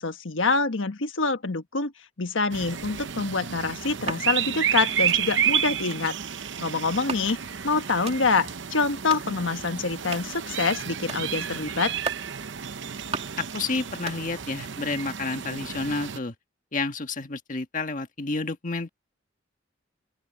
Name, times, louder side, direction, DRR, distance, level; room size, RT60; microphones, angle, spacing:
voice 1, 0.0-1.9 2.2-6.2 6.6-7.4 7.6-12.0, left 4 dB, 85° left, 1.4 m, -26 dB
sound 1, 2.5-16.2, right 9 dB, 70° right, 0.8 m, -31 dB
sound 2, 3.8-4.3 4.9-5.2 5.8-6.1 6.9-7.5 7.9-8.2 8.8-9.3 9.8-10.4 10.9-11.2 11.8-12.3 12.8-13.4 13.8-14.6 14.8-15.4, right 4 dB, 35° right, 2.7 m, -38 dB
voice 2, 13.4-16.3 16.7-18.9, left 3 dB, 45° left, 1.6 m, -30 dB
open air
head